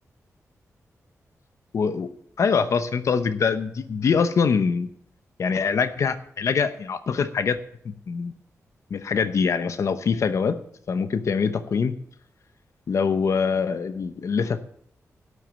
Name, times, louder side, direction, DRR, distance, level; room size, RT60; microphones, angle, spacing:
voice 1, 1.7-2.1 2.4-4.9 5.4-7.6 7.8-8.3 8.9-10.6 10.9-11.9 12.9-14.6, left 5 dB, 60° left, 11 dB, 0.9 m, -24 dB
12.5 x 8.3 x 7.5 m, 0.67 s
wide cardioid pair, 150°, 6 cm